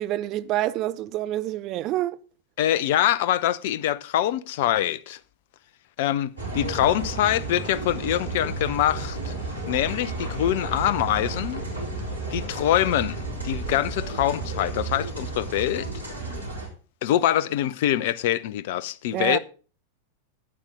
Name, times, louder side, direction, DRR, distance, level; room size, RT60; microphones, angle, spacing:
voice 1, 0.0-2.2 19.1-19.4, right 14 dB, 35° right, 0.5 m, -27 dB
voice 2, 2.6-5.2 6.0-9.3 9.7-11.6 12.3-15.9 17.0-19.4, left 12 dB, 50° left, 0.6 m, -24 dB
sound 1, 6.4-16.7, right 2 dB, 80° right, 3.9 m, -32 dB
11.5 x 8.9 x 3.7 m
figure-of-eight pair, 90°, 0 cm